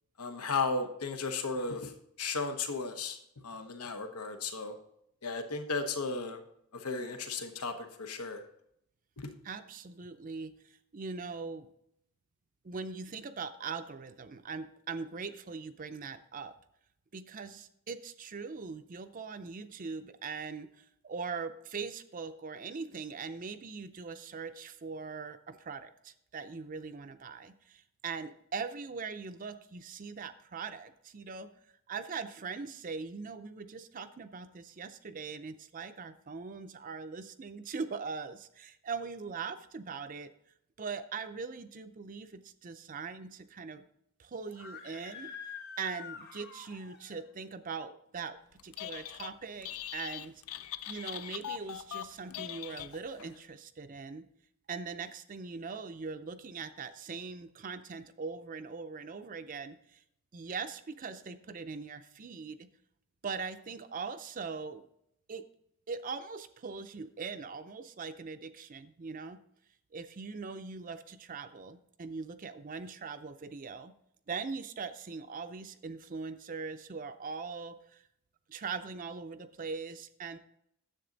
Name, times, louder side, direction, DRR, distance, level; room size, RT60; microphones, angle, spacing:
voice 1, 0.2-1.9 2.2-3.2 3.4-4.7 5.2-6.4 6.7-8.4 9.2-9.3, left 4 dB, 90° left, 6 dB, 1.0 m, -35 dB
voice 2, 9.4-11.7 12.6-16.5 17.1-31.5 31.9-40.3 40.8-43.8 44.2-45.3 45.8-50.4 50.9-54.3 54.7-60.0 60.3-62.7 63.2-64.9 65.3-65.5 65.9-69.4 69.9-73.9 74.3-78.0 78.5-80.4, right 5 dB, 40° right, 9 dB, 0.5 m, -41 dB
Screaming, 44.4-47.2, left 6 dB, 45° left, 1.0 m, -47 dB
Telephone, 48.6-49.3 49.6-53.3, left 11 dB, 70° left, 0.4 m, -41 dB
10.0 x 7.6 x 3.9 m, 0.74 s
head